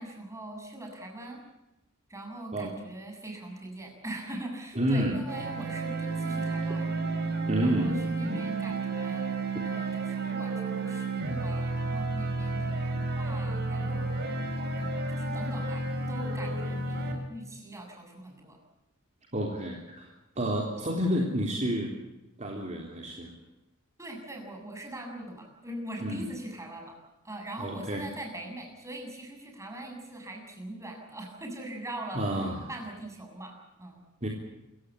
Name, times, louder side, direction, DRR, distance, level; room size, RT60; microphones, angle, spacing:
voice 1, 0.0-1.4 2.1-6.9 7.6-9.3 9.6-14.2 14.8-18.6 24.0-27.0 27.2-32.2 32.7-34.0, right 1 dB, 15° right, 2 dB, 7.2 m, -42 dB
voice 2, 4.8-5.2 7.5-8.0 19.3-21.9 22.4-23.3 26.0-26.3 27.6-28.1 32.1-32.7 34.2-34.3, equal, 35° right, 0 dB, 3.5 m, -30 dB
sound 1, 5.3-17.1, right 3 dB, 50° right, 5.4 m, -31 dB
28.0 x 16.0 x 8.3 m, 0.98 s
head